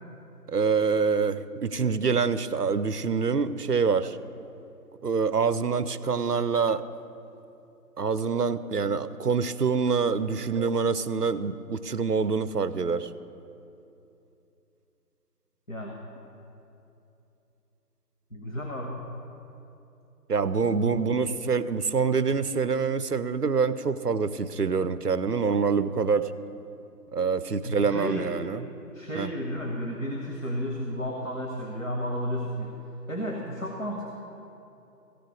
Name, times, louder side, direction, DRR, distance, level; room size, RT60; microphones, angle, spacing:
voice 1, 0.5-4.2 5.0-6.8 8.0-13.1 20.3-26.3 27.1-28.6 29.1-29.3, right 5 dB, 70° right, 15 dB, 0.6 m, -26 dB
voice 2, 15.7-16.0 18.3-19.0 20.8-21.0 27.6-28.5 28.9-32.8 33.1-34.1, equal, 50° left, -1 dB, 1.2 m, -32 dB
15.0 x 5.1 x 8.4 m, 2.9 s
figure-of-eight pair, 180°, 50 cm